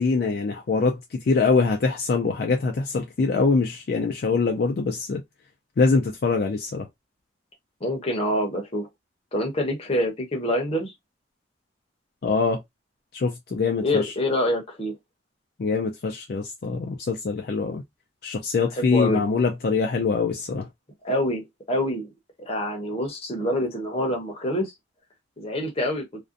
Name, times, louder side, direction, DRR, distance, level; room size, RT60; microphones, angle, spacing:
voice 1, 0.0-5.2 5.8-6.9 12.2-12.6 13.1-14.1 15.6-17.8 18.2-20.7, left 4 dB, 55° left, 0.4 m, -24 dB
voice 2, 7.8-8.9 9.3-10.9 13.8-14.9 18.7-19.2 21.0-22.1 22.4-24.7 25.4-26.0, left 1 dB, 30° left, 0.7 m, -26 dB
2.5 x 2.2 x 2.4 m
head